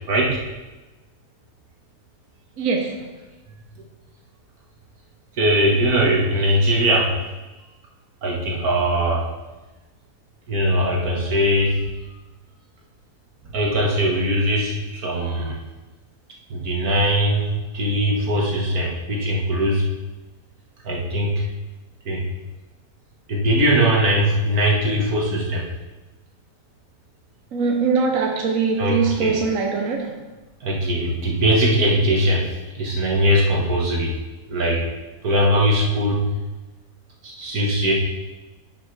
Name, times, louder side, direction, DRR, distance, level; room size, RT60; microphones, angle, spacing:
voice 1, 0.1-0.4 5.4-7.1 8.2-9.2 10.5-11.8 13.5-15.6 16.5-19.8 20.9-21.5 22.1-22.2 23.3-25.6 28.8-29.3 30.6-32.5 32.8-34.1 34.5-34.8 35.2-36.3 37.2-37.9, equal, 90° right, -2 dB, 2.0 m, -20 dB
voice 2, 2.6-3.1 27.5-30.3, right 5 dB, 70° right, 1 dB, 1.2 m, -22 dB
10.5 x 6.3 x 3.3 m, 1.2 s
omnidirectional pair, 1.5 m